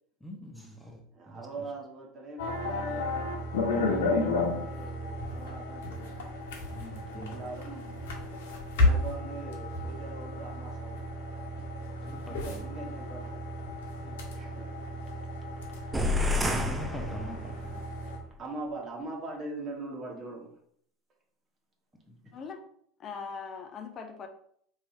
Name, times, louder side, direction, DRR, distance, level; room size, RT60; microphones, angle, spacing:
voice 1, 0.2-1.0 1.3-1.4 3.8-4.1 4.8-5.3 6.7-7.4 12.0-12.7 14.0-14.2 16.7-18.0 22.1-22.2, right 1 dB, 5° left, 0.9 m, -44 dB
voice 2, 1.1-3.4 3.7-6.3 7.1-8.4 8.8-11.2 12.3-13.4 14.3-14.7 18.4-20.5, right 2 dB, 35° right, 1.4 m, -42 dB
sound 1, 2.4-18.2, left 2 dB, 70° left, 1.0 m, -33 dB
sound 2, 15.9-17.8, left 2 dB, 10° right, 0.6 m, -29 dB
voice 3, 23.0-24.3, left 5 dB, 40° left, 0.5 m, -40 dB
4.7 x 3.0 x 2.7 m
hypercardioid pair, 85°, 0 cm